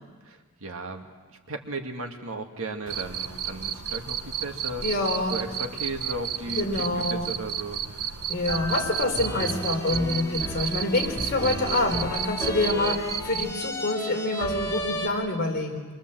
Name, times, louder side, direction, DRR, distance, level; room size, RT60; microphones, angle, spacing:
voice 1, 0.2-4.9 5.3-8.2, right 2 dB, 65° right, 4 dB, 2.2 m, -36 dB
Cricket, 2.9-13.5, right 9 dB, 85° right, 1.0 m, -33 dB
voice 2, 4.8-5.4 6.5-7.3 8.3-15.8, left 2 dB, 45° left, 1 dB, 4.0 m, -26 dB
sound 1, 8.5-15.1, equal, 15° left, 2.1 m, -33 dB
25.5 x 23.0 x 7.8 m, 1.4 s
head